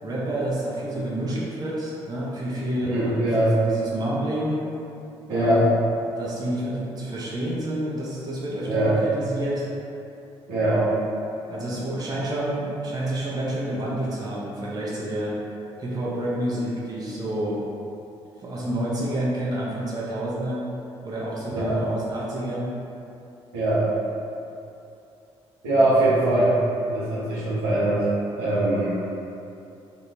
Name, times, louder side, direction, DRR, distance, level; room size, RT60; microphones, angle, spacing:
voice 1, 0.0-3.2 3.6-4.6 5.3-5.7 6.2-9.7 10.6-11.1 11.5-15.4 15.8-17.6 18.4-20.7 21.0-22.7 25.7-25.9, right 1 dB, 30° right, -6 dB, 0.6 m, -29 dB
voice 2, 2.9-3.6 5.3-5.7 8.7-9.0 10.5-10.8 21.6-21.8 23.5-23.9 25.6-26.5 26.9-28.1 28.4-29.0, right 1 dB, 80° right, -9 dB, 0.8 m, -21 dB
2.6 x 2.1 x 3.0 m, 2.7 s
hypercardioid pair, 50°, 14 cm